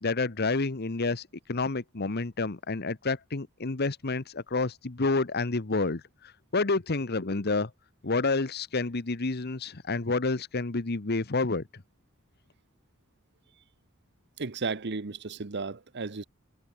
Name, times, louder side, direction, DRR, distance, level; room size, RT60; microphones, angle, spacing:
voice 1, 0.0-7.7 8.0-11.8, left 3 dB, 50° left, 1.1 m, -29 dB
voice 2, 14.4-16.2, right 4 dB, 55° right, 1.1 m, -34 dB
head